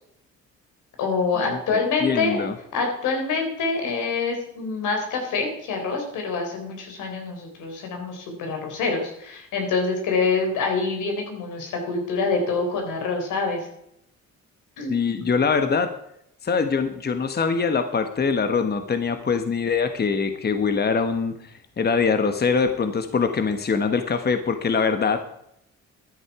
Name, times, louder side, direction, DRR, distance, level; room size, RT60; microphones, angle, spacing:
voice 1, 1.0-2.4 2.7-13.7 14.8-15.3, left 4 dB, 85° left, 3 dB, 4.1 m, -26 dB
voice 2, 1.5-2.5 14.9-15.9 16.4-21.3 21.8-25.2, left 5 dB, 35° left, 8 dB, 1.2 m, -23 dB
13.5 x 10.0 x 4.8 m, 0.76 s
cardioid pair, 90°, 30 cm